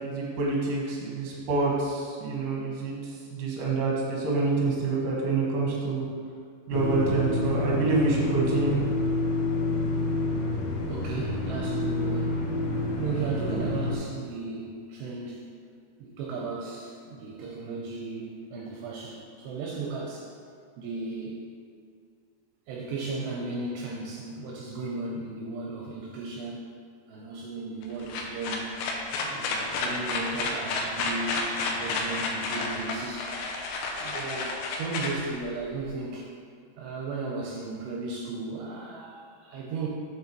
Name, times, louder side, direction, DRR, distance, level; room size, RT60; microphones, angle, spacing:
voice 1, 0.0-6.0 6.7-8.7, right 3 dB, 60° right, -4 dB, 2.5 m, -27 dB
sound 1, 6.7-14.0, left 2 dB, 70° left, 2.6 m, -28 dB
voice 2, 10.9-12.4 13.0-15.4 16.0-20.3 20.8-21.4 22.7-26.7 27.1-28.7 29.2-33.3 34.0-36.3 36.8-39.9, right 3 dB, 80° right, -2 dB, 2.7 m, -35 dB
sound 2, 27.8-35.9, left 3 dB, 90° left, 3.0 m, -31 dB
7.6 x 6.9 x 3.0 m, 2.1 s
omnidirectional pair, 5.0 m